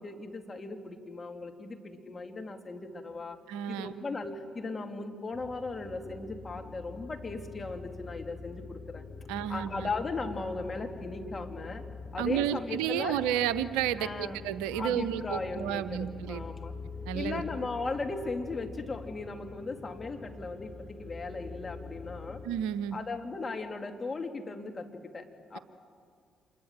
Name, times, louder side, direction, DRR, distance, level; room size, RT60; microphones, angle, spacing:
voice 1, 0.0-3.4 3.7-9.0 9.5-11.8 12.1-13.2 14.0-14.4 14.7-16.7 17.1-22.4 22.9-24.9 25.1-25.2 25.5-25.6, left 3 dB, 35° left, 4 dB, 2.7 m, -37 dB
voice 2, 3.5-3.9 9.3-9.9 12.2-16.5 17.1-17.4 22.4-23.0, right 10 dB, 80° right, 15 dB, 0.6 m, -31 dB
sound 1, 5.3-22.5, left 4 dB, 60° left, 5.8 m, -45 dB
27.0 x 21.5 x 7.4 m, 2.2 s
hypercardioid pair, 45°, 0 cm